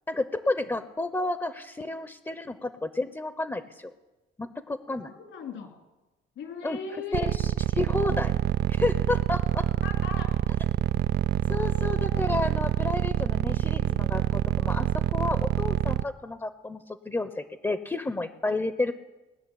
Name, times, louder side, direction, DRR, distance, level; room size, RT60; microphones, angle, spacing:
voice 1, 0.1-3.9 4.4-5.1 6.6-6.8 7.1-7.5 7.8-8.3 8.7-9.7 11.5-18.9, left 2 dB, 15° left, 11 dB, 0.8 m, -31 dB
voice 2, 5.1-5.8 6.3-7.3 9.8-10.3 18.5-18.6, left 5 dB, 80° left, 4 dB, 3.1 m, -38 dB
sound 1, 7.1-16.0, right 12 dB, 55° right, 0.4 m, -25 dB
19.0 x 6.5 x 9.8 m, 1.1 s
cardioid pair, 90°, 20 cm